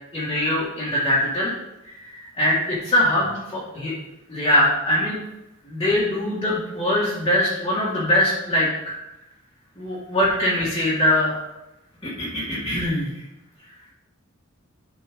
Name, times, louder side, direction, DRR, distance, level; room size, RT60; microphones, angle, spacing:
voice 1, 0.1-1.5 1.8-3.9 4.3-5.2 5.6-8.9 9.8-11.4 12.0-13.1, left 1 dB, 25° left, -9 dB, 2.0 m, -22 dB
12.0 x 4.5 x 3.8 m, 0.95 s
head